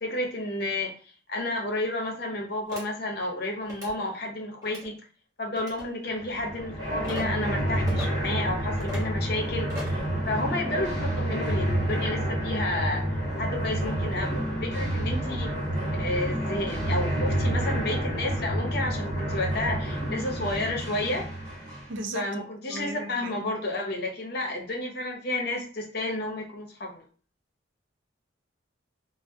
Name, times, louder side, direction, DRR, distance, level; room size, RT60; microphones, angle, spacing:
voice 1, 0.0-5.0 5.4-10.0 10.3-15.5 16.0-21.3 22.1-27.0, left 2 dB, 50° left, 0.7 m, -31 dB
sound 1, 2.7-2.8 3.6-3.9 4.6-4.9 5.5-5.9 7.0-7.2 7.9-8.1 8.8-9.1 9.7-10.0, left 1 dB, 20° right, 0.9 m, -38 dB
sound 2, 6.2-22.0, right 1 dB, 10° left, 1.4 m, -29 dB
voice 2, 21.9-22.4 22.7-23.5, right 2 dB, 70° right, 0.5 m, -36 dB
3.2 x 2.0 x 2.6 m
head